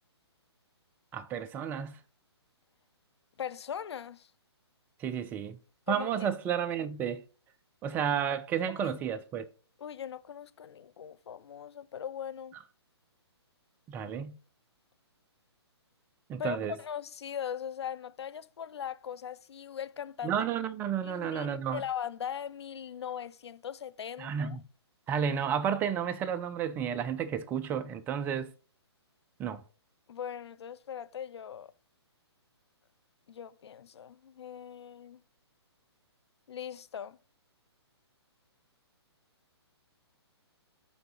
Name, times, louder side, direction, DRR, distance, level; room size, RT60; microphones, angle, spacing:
voice 1, 1.1-2.0 5.0-5.6 5.9-7.2 7.8-9.5 13.9-14.4 16.3-16.8 20.2-21.8 24.2-24.6 25.1-28.5 29.4-29.6, right 8 dB, 15° right, 0.4 m, -32 dB
voice 2, 3.4-4.3 5.9-6.1 8.7-9.0 9.8-12.5 16.4-20.4 21.0-24.6 30.1-31.7 33.3-35.2 36.5-37.2, left 8 dB, 70° left, 0.5 m, -40 dB
6.9 x 3.8 x 3.7 m
hypercardioid pair, 135°, 14 cm